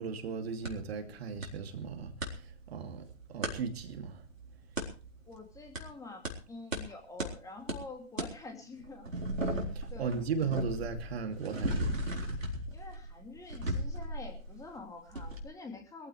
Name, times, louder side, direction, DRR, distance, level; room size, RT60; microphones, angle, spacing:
voice 1, 0.0-2.1 2.7-3.0 3.3-4.2 10.0-12.0, right 5 dB, 50° right, 2.7 m, -36 dB
sound 1, 0.6-0.7 1.4-1.5 1.8-2.3 3.4-3.5 4.8-4.9 5.7-5.8 6.2-6.3 6.7-6.8 7.2-7.3 7.7-7.8 8.2-8.3 8.8-14.8 15.1-15.4, equal, 85° right, 4.1 m, -35 dB
voice 2, 5.3-9.1 9.9-10.2 12.7-16.1, left 3 dB, 10° left, 2.6 m, -47 dB
22.0 x 15.0 x 3.3 m
figure-of-eight pair, 125°, 38 cm